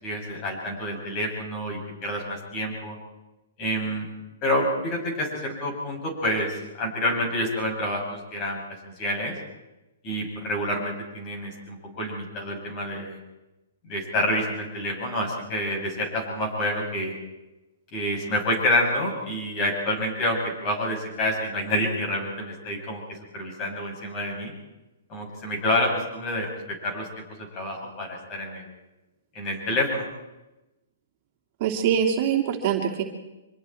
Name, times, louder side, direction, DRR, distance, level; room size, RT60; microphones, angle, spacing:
voice 1, 0.0-3.0 3.6-4.1 4.4-8.6 8.8-9.3 10.0-13.2 13.9-17.1 17.9-24.5 25.1-26.5 26.8-28.7 29.3-30.1, left 1 dB, 30° left, 0 dB, 7.7 m, -28 dB
voice 2, 31.6-33.0, right 8 dB, 40° right, 1 dB, 2.8 m, -23 dB
25.5 x 22.0 x 4.6 m, 1.0 s
hypercardioid pair, 150°, 0 cm